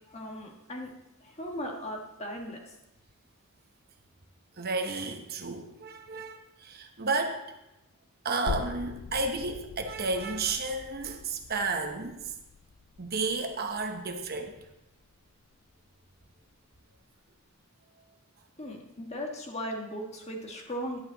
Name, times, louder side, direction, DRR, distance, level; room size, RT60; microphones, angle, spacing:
voice 1, 0.1-0.9 1.2-2.8 18.6-21.0, equal, 30° left, 1 dB, 1.6 m, -37 dB
voice 2, 4.6-7.4 8.2-12.3 13.0-14.7, right 3 dB, 45° right, 5 dB, 0.9 m, -32 dB
sound 1, 8.5-15.7 16.1-16.2, left 5 dB, 85° left, 0.5 m, -42 dB
11.0 x 9.7 x 4.0 m, 0.94 s
head